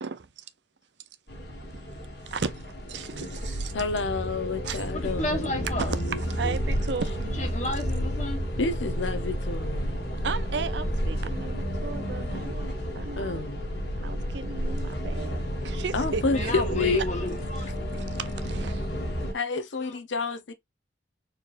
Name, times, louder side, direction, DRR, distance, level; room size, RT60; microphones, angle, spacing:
voice 1, 0.0-0.4 2.3-3.7 4.6-4.8 5.8-7.4 10.2-13.4 14.0-16.8 17.9-18.9, right 5 dB, 70° right, 0.5 m, -35 dB
sound 1, 1.3-19.3, equal, 65° left, 1.6 m, -31 dB
voice 2, 3.7-6.6 8.6-10.0 13.2-13.6 15.9-17.0 19.3-20.5, left 3 dB, 80° left, 0.8 m, -29 dB
voice 3, 4.9-5.9 7.4-8.4 16.3-17.7 20.2-20.3, left 1 dB, 40° left, 1.4 m, -32 dB
4.3 x 3.2 x 2.5 m
head